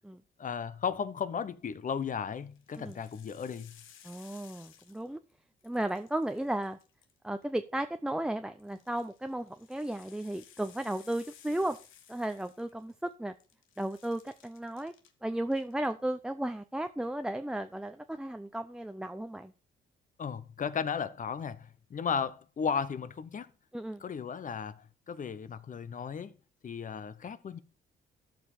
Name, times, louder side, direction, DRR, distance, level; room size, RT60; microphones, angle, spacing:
voice 1, 0.4-3.8 20.2-23.5 24.0-26.3 26.6-27.6, left 6 dB, 40° left, 0.9 m, -35 dB
sound 1, 1.7-2.1 2.5-5.3 5.6-7.4 8.6-13.1 13.4-15.1 15.5-15.9, left 9 dB, 85° left, 1.4 m, -58 dB
voice 2, 4.0-5.2 5.6-6.8 7.2-11.8 12.1-13.3 13.8-14.9 15.2-19.5 23.7-24.0, right 1 dB, 5° right, 0.6 m, -34 dB
13.5 x 5.2 x 4.4 m
cardioid pair, 90°, 20 cm